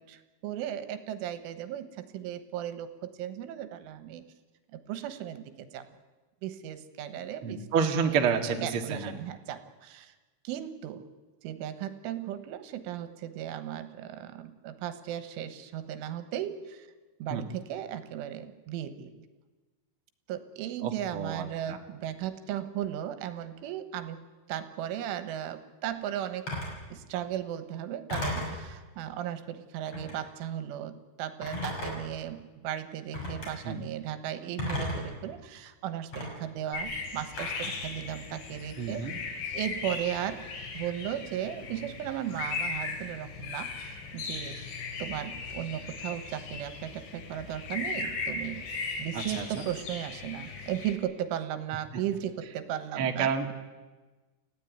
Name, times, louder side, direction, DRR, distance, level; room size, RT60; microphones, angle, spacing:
voice 1, 0.0-4.2 4.7-5.9 6.4-7.7 8.1-8.2 8.6-10.2 10.5-11.1 11.4-16.9 17.2-19.3 20.3-26.5 26.9-39.1 39.5-40.5 40.7-44.6 45.0-48.7 49.0-53.5, right 11 dB, 85° right, 10 dB, 3.9 m, -36 dB
voice 2, 7.4-9.1 17.3-17.4 20.8-21.8 33.6-33.8 38.8-39.1 49.1-49.7 53.0-53.5, right 6 dB, 50° right, 4 dB, 1.7 m, -29 dB
Telephone, 26.5-26.8 28.1-28.6 29.9-30.2 31.4-32.2 33.1-33.5 34.6-35.1 36.1-36.3 37.4-37.8, left 1 dB, 30° left, 7.1 m, -34 dB
sound 1, 36.7-50.9, left 4 dB, 80° left, 5.8 m, -38 dB
29.5 x 15.5 x 9.5 m, 1.3 s
omnidirectional pair, 5.4 m